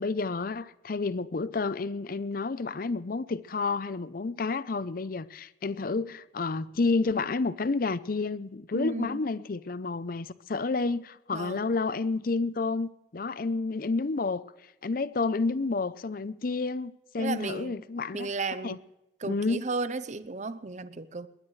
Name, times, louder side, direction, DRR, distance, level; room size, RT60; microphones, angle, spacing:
voice 1, 0.0-14.5 14.8-18.3 18.6-18.8 19.3-19.6, left 3 dB, 55° left, 0.6 m, -30 dB
voice 2, 8.7-9.2 11.3-11.7 17.2-17.8 18.1-18.8 19.2-21.3, right 3 dB, 40° right, 0.7 m, -34 dB
22.0 x 19.0 x 3.2 m
head